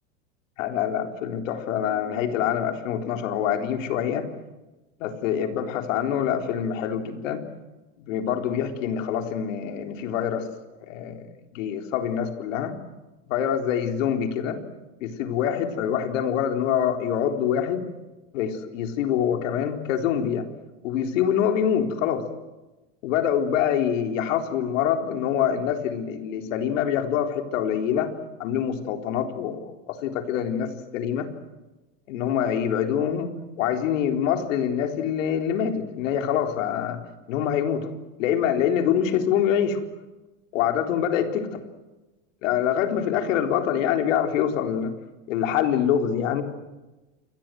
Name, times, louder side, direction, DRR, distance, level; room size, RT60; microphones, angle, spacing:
voice 1, 0.6-4.3 5.0-7.4 8.0-10.5 10.8-12.7 13.3-14.6 15.0-17.8 18.3-20.5 20.8-22.3 23.0-28.1 28.4-31.3 32.1-37.0 37.3-37.9 38.2-39.8 40.5-41.5 42.4-44.9 45.3-46.4, left 9 dB, 75° left, 5 dB, 4.0 m, -25 dB
29.0 x 23.0 x 7.8 m, 1.1 s
supercardioid pair, 140°, 38 cm